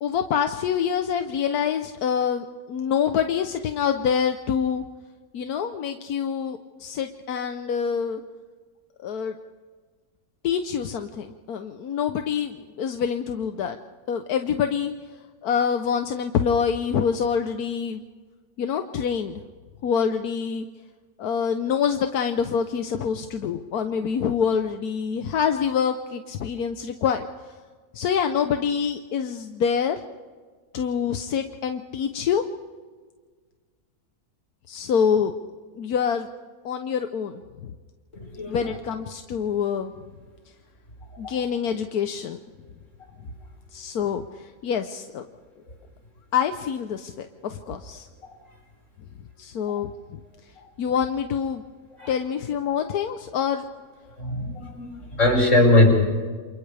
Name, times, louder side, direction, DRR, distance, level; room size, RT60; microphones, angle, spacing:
voice 1, 0.0-4.8 5.3-8.2 9.0-9.3 10.4-13.8 14.1-14.9 15.4-18.0 18.6-19.4 19.8-20.7 21.2-27.3 27.9-30.0 30.7-32.4 34.7-35.3 35.7-36.3 36.6-37.7 38.5-39.9 41.2-42.4 43.7-45.3 46.3-48.1 49.4-50.2 50.8-51.6 52.1-53.6, left 7 dB, 85° left, 7 dB, 1.4 m, -26 dB
voice 2, 38.1-38.6 41.2-41.4 52.0-52.1 54.2-55.9, left 2 dB, 55° left, -1 dB, 6.0 m, -20 dB
28.5 x 28.0 x 3.4 m, 1.5 s
omnidirectional pair, 1.6 m